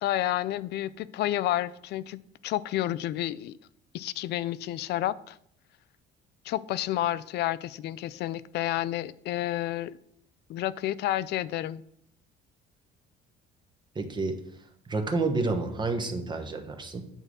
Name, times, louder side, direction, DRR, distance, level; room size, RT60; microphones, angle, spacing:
voice 1, 0.0-3.5 3.9-5.4 6.5-10.0 10.5-11.8, left 13 dB, 60° left, 17 dB, 0.4 m, -30 dB
voice 2, 13.9-14.4 14.9-17.1, right 3 dB, 25° right, 5 dB, 1.1 m, -29 dB
8.9 x 3.7 x 6.5 m, 0.71 s
cardioid pair, 125°, 19 cm